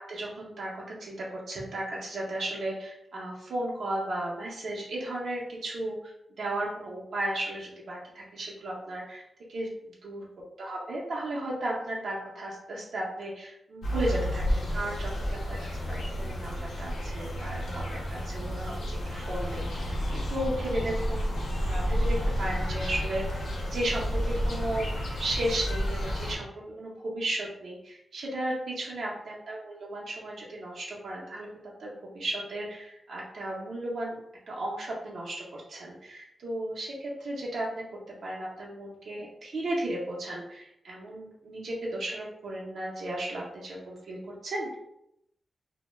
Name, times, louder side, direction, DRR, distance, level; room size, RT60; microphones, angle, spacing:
voice 1, 0.0-6.1 6.4-9.2 9.5-9.7 10.0-10.3 10.6-24.9 25.2-31.5 31.8-34.2 34.5-37.8 38.2-44.8, right 1 dB, 75° right, -4 dB, 0.5 m, -35 dB
sound 1, 13.8-26.3, equal, 85° left, 0.6 m, -31 dB
2.1 x 2.0 x 3.0 m, 0.79 s
wide cardioid pair, 130°, 0 cm